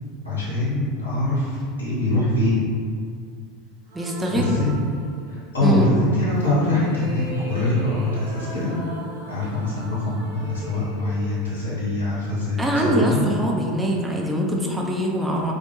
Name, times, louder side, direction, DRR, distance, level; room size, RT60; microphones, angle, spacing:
voice 1, 0.2-2.7 4.3-4.8 5.3-8.7 9.3-13.2, left 2 dB, 85° left, -9 dB, 0.8 m, -23 dB
voice 2, 3.9-4.7 5.6-5.9 12.6-15.5, right 1 dB, 10° right, -1 dB, 0.4 m, -23 dB
sound 1, 3.9-5.6 6.3-12.4, right 1 dB, 75° right, 0.5 m, -39 dB
2.3 x 2.1 x 2.9 m, 2.2 s
hypercardioid pair, 85°, 0 cm